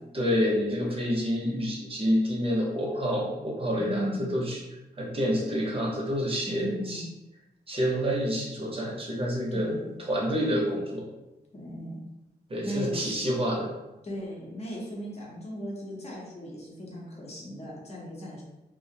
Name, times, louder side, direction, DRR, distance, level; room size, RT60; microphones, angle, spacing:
voice 1, 0.1-4.6 5.0-7.1 7.7-9.7 10.1-11.1 12.5-13.7, equal, 30° right, -2 dB, 0.7 m, -28 dB
voice 2, 3.7-4.3 6.5-7.1 9.5-9.9 11.5-12.0 12.6-13.2 14.0-18.4, equal, 35° left, -3 dB, 0.7 m, -37 dB
2.4 x 2.0 x 2.6 m, 0.98 s
wide cardioid pair, 85°, 18 cm